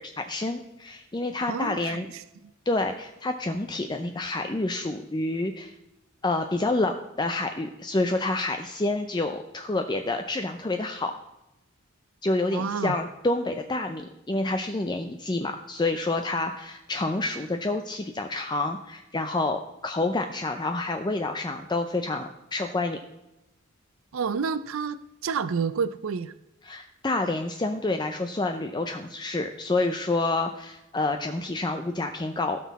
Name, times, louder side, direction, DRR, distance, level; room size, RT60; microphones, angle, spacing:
voice 1, 0.0-2.1 2.7-5.7 6.2-11.1 12.2-23.0 26.6-32.6, left 2 dB, 20° left, 5 dB, 0.5 m, -28 dB
voice 2, 1.5-2.2 12.5-13.0 24.1-26.3, right 5 dB, 70° right, 14 dB, 0.4 m, -29 dB
16.0 x 6.2 x 4.1 m, 0.94 s
head